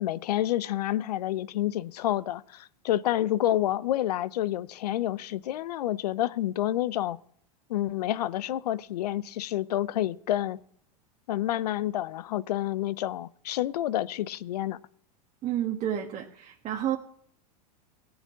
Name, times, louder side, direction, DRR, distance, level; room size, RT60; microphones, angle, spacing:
voice 1, 0.0-7.2 7.7-10.6 11.3-14.8, left 13 dB, 80° left, 0.6 m, -29 dB
voice 2, 15.4-17.0, right 11 dB, 35° right, 1.4 m, -30 dB
16.5 x 6.0 x 8.5 m
hypercardioid pair, 115°, 20 cm